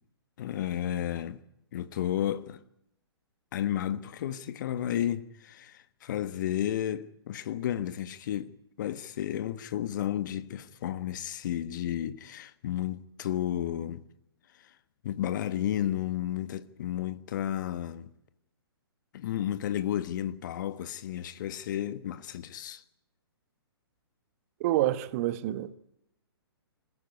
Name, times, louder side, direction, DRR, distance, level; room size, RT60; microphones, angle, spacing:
voice 1, 0.4-1.4 1.7-2.6 3.5-8.5 8.8-14.0 14.5-14.7 15.0-18.1 19.1-22.8, left 11 dB, 45° left, 1.4 m, -32 dB
voice 2, 24.6-25.8, right 14 dB, 35° right, 1.3 m, -28 dB
26.0 x 15.5 x 9.5 m
figure-of-eight pair, 120°, 14 cm